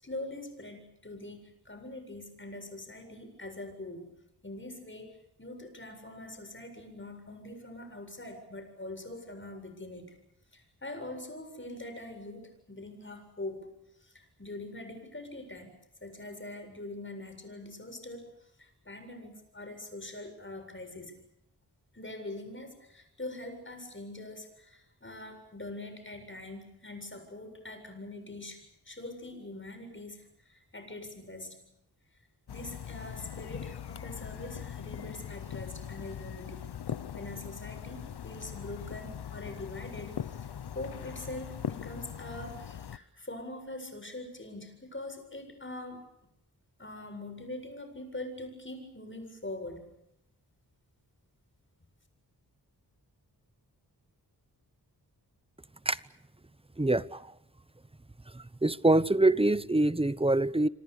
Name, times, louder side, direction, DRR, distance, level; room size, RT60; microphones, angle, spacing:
voice 1, 0.0-4.1 4.4-10.2 10.5-13.7 14.0-21.2 21.9-31.7 32.5-36.7 37.1-46.1 46.8-49.9, left 2 dB, 30° left, 7.7 m, -43 dB
sound 1, 32.5-43.0, left 9 dB, 80° left, 1.0 m, -41 dB
voice 2, 56.8-57.2 58.6-60.7, right 2 dB, 15° right, 0.9 m, -24 dB
27.0 x 26.0 x 6.9 m
wide cardioid pair, 65°, 39 cm